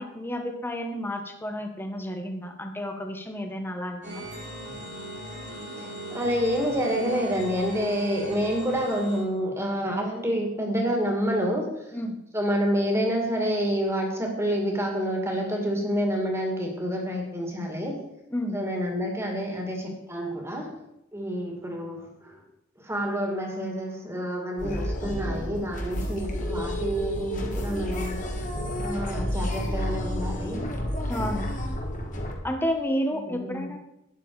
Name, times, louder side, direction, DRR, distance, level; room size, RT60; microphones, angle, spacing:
voice 1, 0.0-4.2 11.9-12.2 18.3-18.6 31.1-31.5 32.4-33.8, equal, 10° left, 4 dB, 1.3 m, -31 dB
sound 1, 4.0-9.2, right 1 dB, 55° right, 3.2 m, -39 dB
voice 2, 5.8-11.7 12.3-18.0 18.5-20.7 21.1-22.4 22.8-28.2 28.8-30.6 33.3-33.7, equal, 15° right, 1 dB, 2.3 m, -28 dB
sound 2, 24.6-32.3, left 1 dB, 40° left, 2.0 m, -30 dB
12.0 x 9.6 x 4.9 m, 0.85 s
head